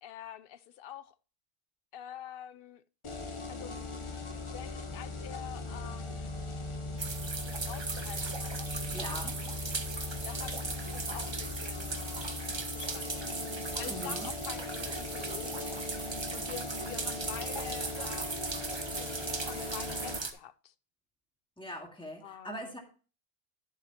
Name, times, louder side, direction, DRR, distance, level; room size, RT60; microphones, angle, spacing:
voice 1, 0.0-1.2 1.9-2.8 3.5-3.8 4.4-6.4 7.5-9.6 10.2-12.4 12.7-15.9 16.3-18.5 19.0-20.7 22.2-22.7, left 10 dB, 65° left, 0.7 m, -47 dB
sound 1, 3.0-20.2, left 2 dB, 30° left, 0.9 m, -39 dB
sound 2, 7.0-20.3, right 4 dB, 30° right, 0.7 m, -38 dB
voice 2, 8.9-9.4 13.9-14.3 21.6-22.8, equal, 5° left, 2.0 m, -41 dB
11.5 x 7.4 x 2.9 m
omnidirectional pair, 1.1 m